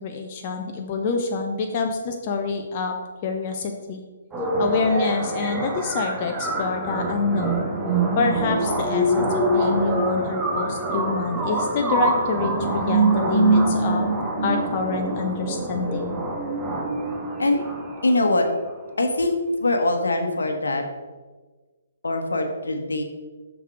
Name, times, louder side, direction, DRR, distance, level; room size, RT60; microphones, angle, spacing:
voice 1, 0.0-2.9 3.2-4.0 4.6-7.6 8.2-14.1 14.4-16.2, left 4 dB, 35° left, 3 dB, 0.8 m, -26 dB
sound 1, 4.3-18.3, right 2 dB, 15° right, 1.3 m, -24 dB
voice 2, 18.0-18.5 19.0-20.8 22.0-23.0, left 2 dB, 70° left, 4 dB, 1.2 m, -22 dB
6.6 x 6.2 x 5.0 m, 1.3 s
figure-of-eight pair, 130°, 0 cm